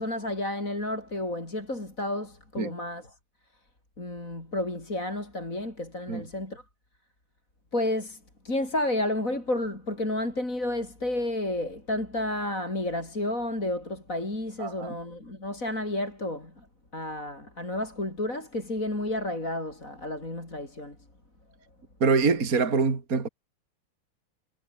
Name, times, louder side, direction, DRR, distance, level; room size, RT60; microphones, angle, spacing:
voice 1, 0.0-3.2 4.0-6.6 7.7-16.7 16.9-21.0, left 1 dB, 35° left, 6.9 m, -31 dB
voice 2, 14.6-15.0 22.0-23.3, right 4 dB, 40° right, 3.1 m, -24 dB
omnidirectional pair, 2.4 m